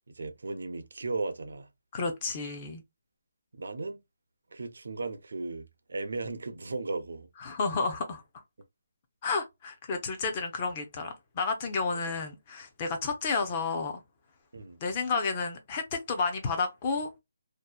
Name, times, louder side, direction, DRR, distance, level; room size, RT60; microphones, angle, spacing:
voice 1, 0.1-1.7 3.5-4.0 4.5-7.3 11.9-12.2 14.5-14.8, right 3 dB, 70° right, 0.5 m, -36 dB
voice 2, 1.9-2.8 7.4-8.2 9.2-14.0 14.8-17.1, left 4 dB, 20° left, 0.4 m, -31 dB
2.6 x 2.0 x 2.3 m
hypercardioid pair, 180°, 0 cm